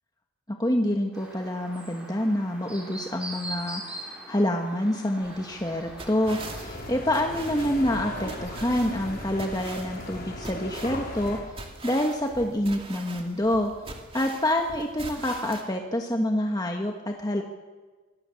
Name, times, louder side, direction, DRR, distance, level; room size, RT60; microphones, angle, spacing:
voice 1, 0.6-13.7 14.1-17.4, left 1 dB, 20° left, 3 dB, 1.5 m, -27 dB
Chirp tweet, 1.1-6.6, right 1 dB, 5° right, 5.4 m, -41 dB
sound 1, 5.2-15.6, right 3 dB, 25° right, 2.4 m, -43 dB
sound 2, 6.2-11.4, left 1 dB, 45° left, 5.3 m, -37 dB
25.0 x 17.5 x 7.1 m, 1.3 s
head